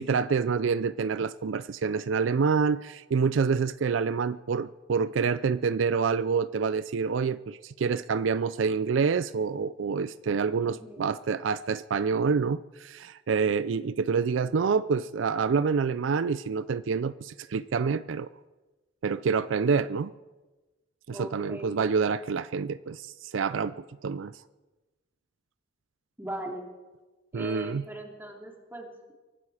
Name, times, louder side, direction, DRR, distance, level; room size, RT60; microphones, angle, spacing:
voice 1, 0.0-18.3 19.0-20.1 21.1-24.3 27.3-27.8, right 5 dB, 75° right, 16 dB, 0.4 m, -27 dB
voice 2, 10.6-11.1 21.1-21.8 26.2-26.7 27.3-29.1, right 1 dB, 10° right, 1 dB, 2.8 m, -40 dB
24.0 x 12.0 x 4.9 m, 1.2 s
head